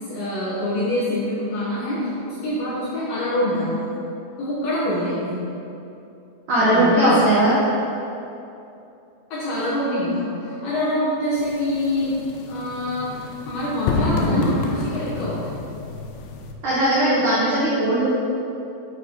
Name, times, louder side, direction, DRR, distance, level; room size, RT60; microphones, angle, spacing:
voice 1, 0.1-4.0 4.4-5.4 6.6-7.2 9.3-12.2 12.5-13.1 13.5-15.5, left 1 dB, 65° left, -10 dB, 2.5 m, -25 dB
voice 2, 6.5-7.5 16.6-18.1, right 1 dB, 85° right, -9 dB, 1.8 m, -18 dB
sound 1, 11.4-16.5, left 3 dB, 85° left, 3.2 m, -28 dB
11.0 x 4.8 x 3.8 m, 2.8 s
omnidirectional pair, 5.8 m